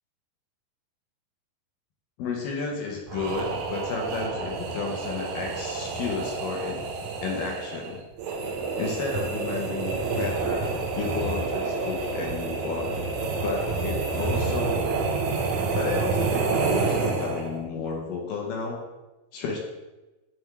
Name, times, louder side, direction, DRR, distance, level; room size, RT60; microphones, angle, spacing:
voice 1, 2.2-6.8 7.2-8.0 8.8-13.1 13.4-14.8 15.7-18.8 19.3-19.6, left 4 dB, 70° left, 0 dB, 2.4 m, -32 dB
sound 1, 3.1-17.7, right 4 dB, 85° right, 1.7 m, -28 dB
9.5 x 3.5 x 4.6 m, 1.1 s
omnidirectional pair, 4.5 m